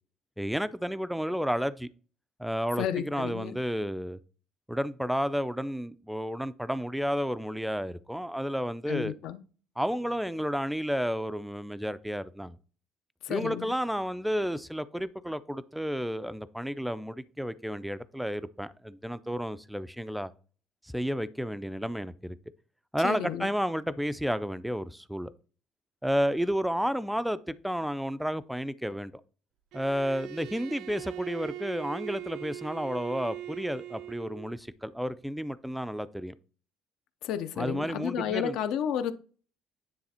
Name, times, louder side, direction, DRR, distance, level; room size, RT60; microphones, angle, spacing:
voice 1, 0.4-1.9 2.4-4.2 4.7-9.1 9.8-12.6 13.3-20.3 20.8-22.4 22.9-25.3 26.0-29.1 29.7-36.3 37.6-38.6, equal, ahead, 0.3 m, -31 dB
voice 2, 2.8-3.6 8.9-9.4 13.2-13.7 23.0-23.5 37.2-39.1, left 9 dB, 70° left, 0.6 m, -32 dB
Bowed string instrument, 29.7-34.5, right 13 dB, 70° right, 0.4 m, -41 dB
9.6 x 3.3 x 4.3 m
cardioid pair, 155°, 0 cm